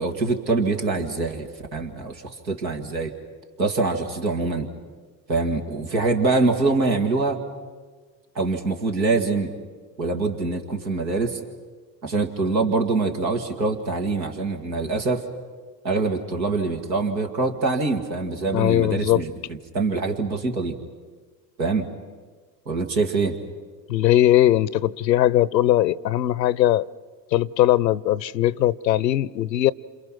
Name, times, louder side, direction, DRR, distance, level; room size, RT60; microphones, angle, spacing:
voice 1, 0.0-3.1 3.6-4.7 5.3-7.4 8.4-9.5 10.0-11.4 12.0-15.2 15.8-20.8 21.6-21.9 22.7-23.3, right 3 dB, 90° right, 2.2 m, -24 dB
voice 2, 18.5-19.2 23.9-26.9 27.3-29.7, left 13 dB, 85° left, 0.7 m, -20 dB
29.0 x 27.5 x 6.1 m
hypercardioid pair, 70°, 50 cm